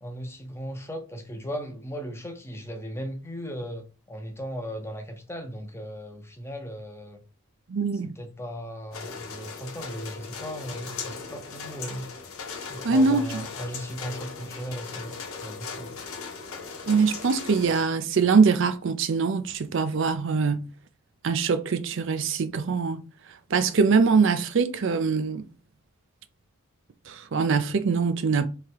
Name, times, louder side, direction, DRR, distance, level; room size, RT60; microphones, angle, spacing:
voice 1, 0.0-7.2 8.2-12.1 12.7-16.0, equal, 10° left, 0.7 m, -37 dB
voice 2, 7.7-8.1 12.8-13.4 16.9-20.7 21.2-23.0 23.5-25.5 27.1-28.5, right 5 dB, 60° right, 0.4 m, -23 dB
sound 1, 8.9-17.9, left 5 dB, 75° left, 1.0 m, -38 dB
3.5 x 3.3 x 4.5 m
head